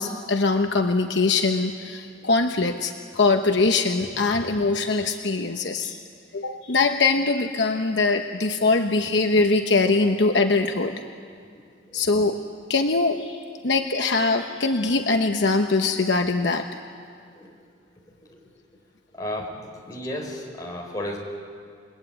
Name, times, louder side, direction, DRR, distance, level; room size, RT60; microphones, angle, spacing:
voice 1, 0.0-6.0 6.3-10.9 11.9-12.4 12.7-16.7, left 3 dB, 60° left, 5 dB, 1.1 m, -22 dB
voice 2, 19.1-19.5 19.8-21.2, left 1 dB, 20° left, -1 dB, 4.6 m, -35 dB
29.0 x 21.5 x 8.9 m, 2.2 s
head